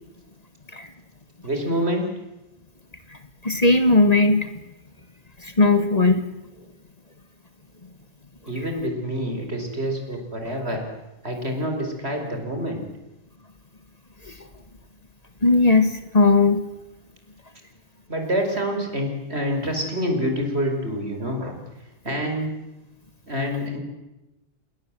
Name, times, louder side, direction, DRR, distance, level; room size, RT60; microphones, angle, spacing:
voice 1, 1.4-2.1 8.5-10.8 11.2-12.8 18.1-21.6 22.0-22.5 23.3-23.8, equal, 70° right, 4 dB, 5.5 m, -27 dB
voice 2, 3.4-4.5 5.4-6.2 15.4-16.6, left 3 dB, 35° left, 9 dB, 1.9 m, -17 dB
28.0 x 21.0 x 7.7 m, 1.0 s
omnidirectional pair, 1.1 m